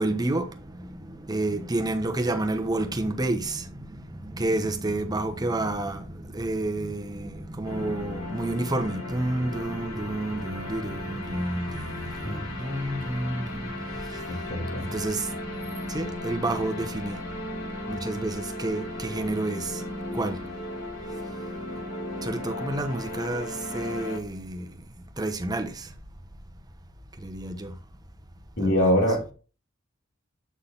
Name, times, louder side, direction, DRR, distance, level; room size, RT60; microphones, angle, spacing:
voice 1, 0.0-17.2 17.7-19.9 20.1-20.4 22.2-24.8 25.2-25.9 27.2-27.8 28.6-29.0, right 2 dB, 20° right, 0.9 m, -30 dB
sound 1, 7.6-24.2, left 1 dB, 85° left, 2.9 m, -36 dB
voice 2, 14.3-14.8 28.6-29.3, equal, 60° left, 2.8 m, -24 dB
8.4 x 4.0 x 3.9 m
head